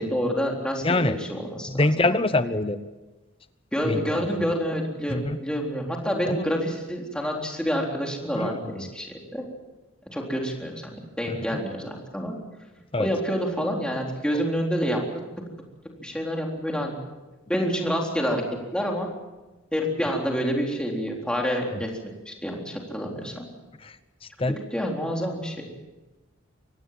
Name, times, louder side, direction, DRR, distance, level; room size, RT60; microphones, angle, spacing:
voice 1, 0.0-2.2 3.7-9.5 10.1-12.3 13.0-15.0 16.0-16.9 17.5-18.4 18.7-19.1 19.7-22.0 22.3-23.5 24.5-25.7, equal, 5° left, 0 dB, 3.8 m, -28 dB
voice 2, 0.8-1.2 1.7-2.8 3.9-4.0 5.1-5.4 6.3-6.4 8.4-8.6 11.3-11.4 12.9-13.1 24.4-24.6, left 2 dB, 25° left, 12 dB, 0.8 m, -23 dB
24.5 x 19.0 x 7.5 m, 1.1 s
head